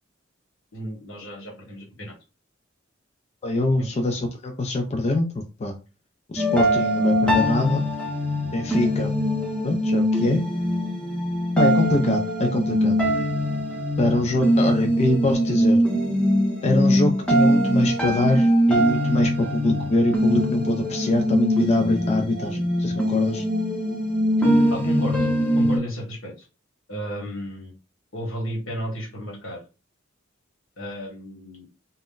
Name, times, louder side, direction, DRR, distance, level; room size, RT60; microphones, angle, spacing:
voice 1, 0.7-2.1 3.8-3.9 24.7-25.3 25.5-26.5 26.9-27.7 28.1-29.6 30.8-31.7, equal, 80° left, 1 dB, 1.2 m, -33 dB
voice 2, 3.4-5.3 5.6-5.7 6.3-7.8 8.5-9.1 9.6-10.4 11.6-12.9 14.0-15.8 16.6-23.4, left 2 dB, 30° left, 4 dB, 0.4 m, -23 dB
sound 1, 6.4-25.8, equal, 5° left, 0.7 m, -22 dB
2.4 x 2.1 x 3.7 m, 0.31 s
head